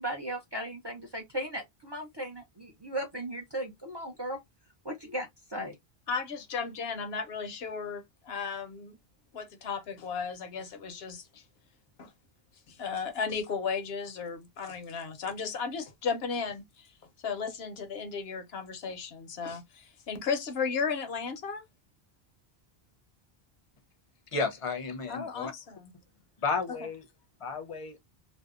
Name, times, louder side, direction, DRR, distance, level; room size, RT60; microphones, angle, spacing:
voice 1, 0.0-4.4 4.8-5.8, right 1 dB, 35° right, 0.4 m, -36 dB
voice 2, 6.1-9.0 9.3-11.4 12.0-12.1 12.7-16.9 17.2-21.6 25.1-25.9, left 5 dB, 80° left, 0.9 m, -35 dB
voice 3, 24.3-25.5 26.4-27.0 27.4-28.0, left 4 dB, 40° left, 0.6 m, -32 dB
2.7 x 2.1 x 2.3 m
omnidirectional pair, 1.0 m